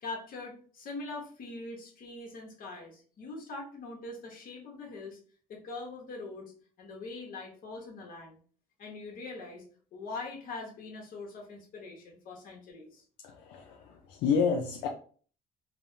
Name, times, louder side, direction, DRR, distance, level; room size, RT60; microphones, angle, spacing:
voice 1, 0.0-5.2 5.5-6.5 6.8-8.4 8.8-9.6 9.9-13.0, left 3 dB, 55° left, 0 dB, 1.1 m, -42 dB
voice 2, 13.2-14.9, left 6 dB, 90° left, 2 dB, 0.4 m, -29 dB
3.3 x 2.1 x 2.6 m, 0.43 s
cardioid pair, 110°, 17 cm